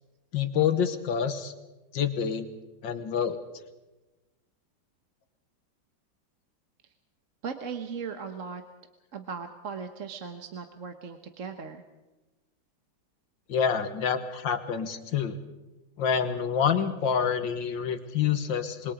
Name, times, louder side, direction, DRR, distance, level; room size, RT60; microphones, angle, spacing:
voice 1, 0.3-1.5 1.9-2.5 2.8-3.4 13.5-15.4 16.0-18.9, left 7 dB, 75° left, 9 dB, 2.0 m, -27 dB
voice 2, 7.4-8.6 9.1-11.8, right 5 dB, 45° right, 7 dB, 1.3 m, -38 dB
26.0 x 22.0 x 5.0 m, 1.1 s
omnidirectional pair, 2.1 m